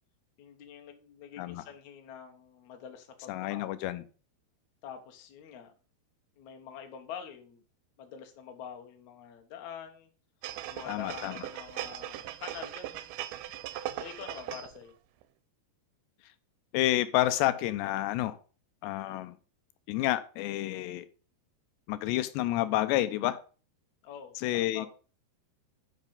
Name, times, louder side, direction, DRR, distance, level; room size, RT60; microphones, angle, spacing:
voice 1, 0.4-3.7 4.8-5.7 6.4-7.6 8.0-10.1 10.7-13.2 14.0-15.0 24.0-24.9, left 8 dB, 65° left, 5 dB, 1.9 m, -46 dB
voice 2, 3.3-4.0 10.9-11.4 16.7-18.4 18.8-19.4 19.9-21.1 21.9-23.4 24.4-24.9, left 15 dB, 85° left, 13 dB, 2.7 m, -29 dB
sound 1, 10.4-14.8 15.2-15.3, right 13 dB, 90° right, 2.9 m, -39 dB
8.3 x 5.9 x 5.2 m, 0.37 s
omnidirectional pair, 5.1 m